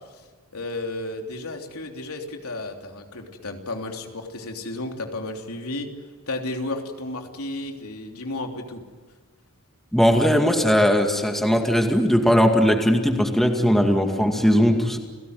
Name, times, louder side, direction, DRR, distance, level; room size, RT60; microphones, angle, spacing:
voice 1, 0.5-5.9 6.3-8.8, left 2 dB, 85° left, 3 dB, 3.2 m, -33 dB
voice 2, 9.9-15.0, equal, ahead, 3 dB, 2.2 m, -19 dB
29.5 x 18.0 x 9.5 m, 1.4 s
head